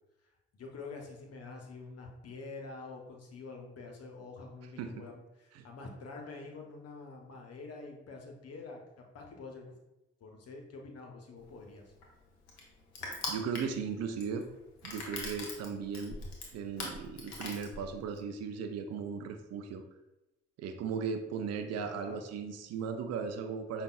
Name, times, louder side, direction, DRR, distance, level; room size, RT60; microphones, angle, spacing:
voice 1, 0.5-9.7 10.2-11.9 21.8-22.2, left 3 dB, 50° left, 1 dB, 0.9 m, -47 dB
Crushing, 11.4-18.2, left 3 dB, 90° left, 0.6 m, -42 dB
voice 2, 13.3-14.5 14.8-16.2 16.5-19.8 20.6-23.8, right 6 dB, 55° right, 7 dB, 0.5 m, -37 dB
5.1 x 2.4 x 2.4 m, 0.97 s
hypercardioid pair, 40°, 31 cm